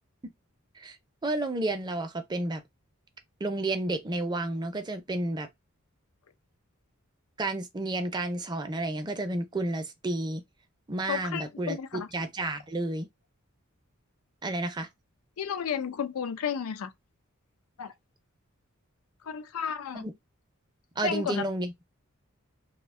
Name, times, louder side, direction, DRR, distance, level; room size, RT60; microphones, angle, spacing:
voice 1, 1.2-2.6 3.4-5.5 7.4-10.4 10.9-11.8 12.1-13.1 14.4-14.9 19.9-20.1 21.0-21.7, right 2 dB, 20° right, 0.5 m, -31 dB
voice 2, 11.1-12.1 15.4-16.9 17.8-17.9 19.2-20.1 21.0-21.4, left 7 dB, 90° left, 0.4 m, -32 dB
2.7 x 2.1 x 3.5 m
head